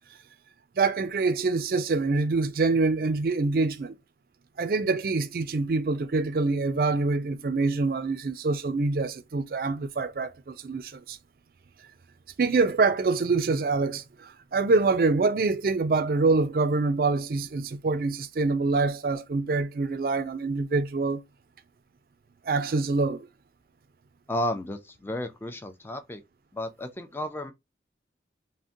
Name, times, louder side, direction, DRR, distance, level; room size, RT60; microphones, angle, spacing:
voice 1, 0.8-3.9 4.6-11.2 12.4-21.2 22.4-23.3, right 3 dB, 50° right, 0.4 m, -25 dB
voice 2, 24.3-26.2 26.5-27.5, left 1 dB, 10° left, 0.4 m, -32 dB
3.6 x 2.1 x 2.6 m
head